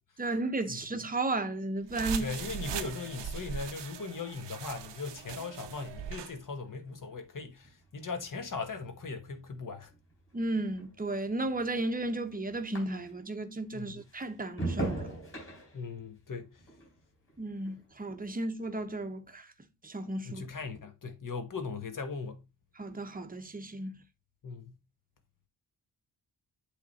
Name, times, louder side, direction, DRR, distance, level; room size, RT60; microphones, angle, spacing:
voice 1, 0.2-2.3 10.3-15.1 17.4-19.5 19.8-20.4 22.8-24.0, right 2 dB, 20° right, 0.9 m, -34 dB
sound 1, 1.9-6.3, right 8 dB, 85° right, 0.8 m, -40 dB
voice 2, 2.2-9.9 13.7-14.0 15.7-16.5 20.2-22.4 24.4-24.8, left 4 dB, 50° left, 1.3 m, -39 dB
sound 2, 6.6-13.4 13.7-18.3 18.6-19.1, right 2 dB, 30° left, 3.7 m, -42 dB
8.2 x 3.5 x 4.1 m
wide cardioid pair, 140°, 42 cm